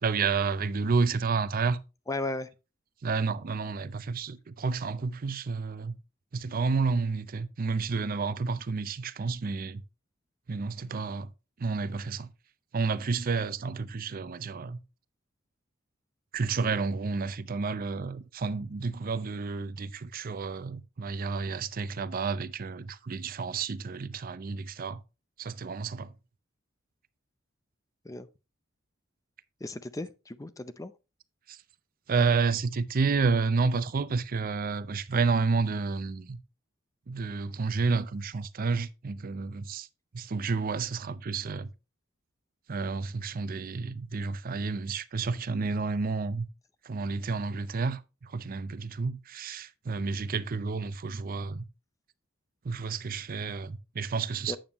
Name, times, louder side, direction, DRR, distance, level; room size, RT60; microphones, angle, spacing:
voice 1, 0.0-1.8 3.0-5.9 6.3-9.8 10.5-11.3 11.6-12.3 12.7-14.8 16.3-25.0 25.4-26.1 31.5-31.6 32.1-36.4 37.1-39.9 40.1-41.7 42.7-46.5 46.8-51.6 52.6-54.6, right 4 dB, 45° right, 0.5 m, -30 dB
voice 2, 2.1-2.5 28.0-28.3 29.6-30.9 54.5-54.6, left 2 dB, 15° left, 0.5 m, -35 dB
8.9 x 6.9 x 3.0 m
head